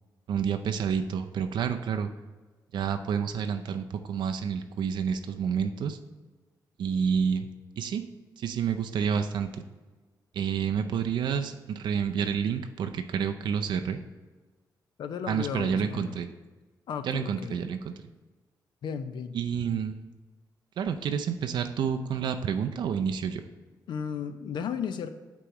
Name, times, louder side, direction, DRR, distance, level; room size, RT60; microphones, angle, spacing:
voice 1, 0.3-2.1 2.7-6.0 6.8-7.5 7.8-8.0 8.4-9.6 10.3-14.0 15.3-16.3 17.0-17.9 19.3-20.0 20.8-23.4, right 7 dB, 80° right, 7 dB, 0.5 m, -29 dB
voice 2, 15.0-16.2 16.9-17.5 18.8-19.4 23.9-25.1, left 7 dB, 80° left, 10 dB, 0.5 m, -34 dB
8.3 x 3.0 x 4.7 m, 1.3 s
wide cardioid pair, 135°, 8 cm